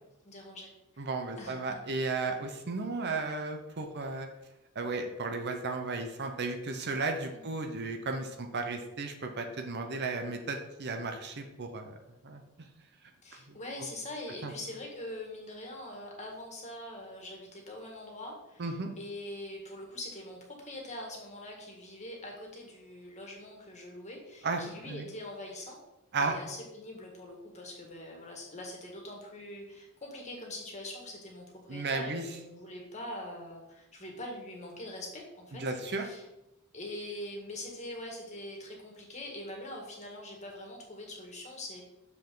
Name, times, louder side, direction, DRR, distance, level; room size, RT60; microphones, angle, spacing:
voice 1, 0.2-1.0 1.4-1.8 7.3-7.5 13.2-25.8 26.2-36.2 36.7-41.8, left 1 dB, 30° left, 0 dB, 1.8 m, -43 dB
voice 2, 1.0-4.3 4.7-12.0 12.2-12.4 13.5-13.6 14.4-14.5 18.6-18.9 24.4-25.1 26.1-26.4 31.7-32.2 35.5-36.0, right 3 dB, 50° right, 5 dB, 0.8 m, -34 dB
6.9 x 6.0 x 3.8 m, 0.94 s
head